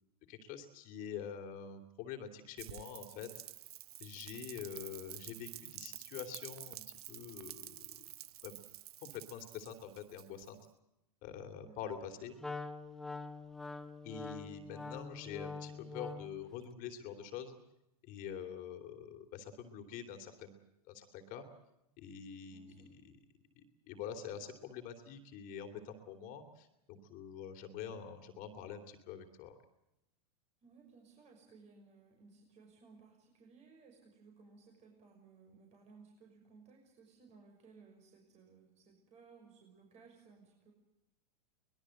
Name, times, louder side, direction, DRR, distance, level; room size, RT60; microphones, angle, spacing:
voice 1, 0.3-3.3 4.0-6.8 7.1-8.1 8.4-8.6 9.0-10.6 11.2-12.3 14.0-17.6 18.1-20.5 20.9-21.4 22.0-23.2 23.6-29.6, left 8 dB, 40° left, 4 dB, 3.1 m, -46 dB
Rain, 2.6-10.7, right 13 dB, 70° right, 0.8 m, -50 dB
voice 2, 11.6-12.2 22.5-22.9 30.6-40.7, right 4 dB, 35° right, 1 dB, 6.2 m, -61 dB
Wind instrument woodwind instrument, 12.4-16.4, left 3 dB, ahead, 1.4 m, -45 dB
23.5 x 21.0 x 7.8 m, 0.88 s
hypercardioid pair, 115°, 20 cm